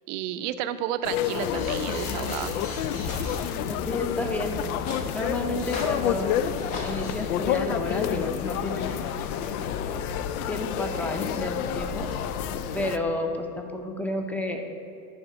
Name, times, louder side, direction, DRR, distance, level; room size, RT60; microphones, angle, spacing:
voice 1, 0.1-2.5, right 11 dB, 50° right, 12 dB, 0.5 m, -31 dB
sound 1, 1.0-13.0, left 10 dB, 65° left, 0.5 m, -30 dB
sound 2, 1.4-12.9, left 2 dB, 45° left, 1.8 m, -37 dB
voice 2, 3.7-4.6 5.1-6.5 6.8-8.9 9.9-10.0 10.5-12.1 12.7-14.6, left 2 dB, 5° left, 4 dB, 0.7 m, -31 dB
10.5 x 4.2 x 5.0 m, 2.5 s
hypercardioid pair, 85°, 48 cm